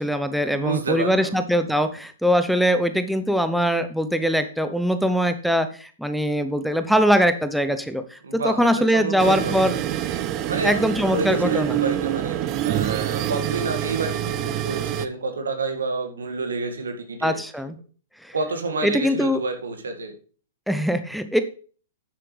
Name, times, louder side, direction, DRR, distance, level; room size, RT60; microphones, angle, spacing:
voice 1, 0.0-9.7 10.6-11.8 17.2-17.8 18.2-18.3 18.8-19.4 20.7-21.4, equal, ahead, 9 dB, 0.7 m, -22 dB
voice 2, 0.5-1.4 8.2-9.8 10.5-17.4 18.3-20.1, right 3 dB, 75° right, 6 dB, 1.9 m, -29 dB
sound 1, 9.2-15.1, right 12 dB, 35° right, 0.7 m, -26 dB
10.0 x 7.6 x 3.3 m, 0.39 s
figure-of-eight pair, 110°, 0 cm